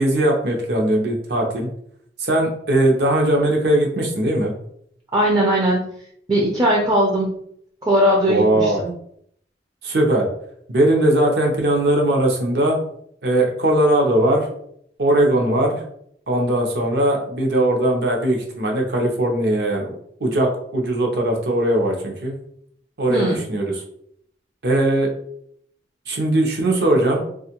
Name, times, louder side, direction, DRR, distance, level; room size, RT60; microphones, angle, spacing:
voice 1, 0.0-1.7 2.2-4.5 8.3-8.8 9.8-10.3 10.7-12.8 13.2-14.5 15.0-15.8 16.3-20.0 20.2-22.4 23.0-23.8 24.6-25.1 26.1-27.3, right 1 dB, 65° right, 0 dB, 0.7 m, -19 dB
voice 2, 5.1-5.9 6.3-7.4 7.8-8.9 23.1-23.4, equal, 20° right, -2 dB, 0.4 m, -19 dB
2.5 x 2.4 x 2.8 m, 0.69 s
head